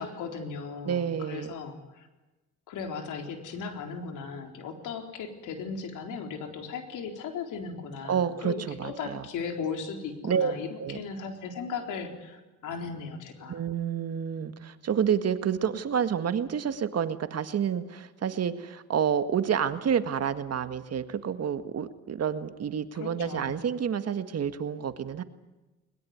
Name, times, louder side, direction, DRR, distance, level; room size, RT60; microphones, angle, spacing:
voice 1, 0.0-2.1 2.7-13.6 22.9-23.6, left 5 dB, 85° left, 5 dB, 4.0 m, -37 dB
voice 2, 0.9-1.5 8.1-9.2 10.2-10.5 10.8-11.0 13.5-25.2, right 8 dB, 55° right, 10 dB, 1.8 m, -29 dB
21.0 x 21.0 x 9.6 m, 1.1 s
cardioid pair, 90°, 30 cm